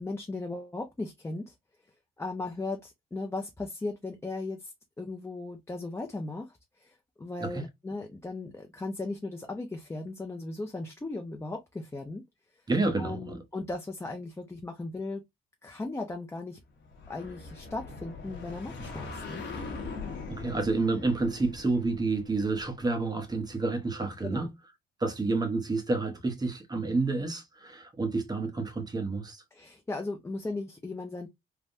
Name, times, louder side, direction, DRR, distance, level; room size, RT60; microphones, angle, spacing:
voice 1, 0.0-1.5 2.2-12.2 13.0-15.2 15.6-16.6 17.1-19.4 24.2-24.5 29.5-31.3, left 2 dB, 15° left, 0.5 m, -37 dB
voice 2, 12.7-13.4 20.3-24.5 25.0-29.4, right 3 dB, 20° right, 0.9 m, -29 dB
sound 1, 16.8-23.4, left 4 dB, 65° left, 1.0 m, -42 dB
3.4 x 2.1 x 2.5 m
cardioid pair, 90°, 20 cm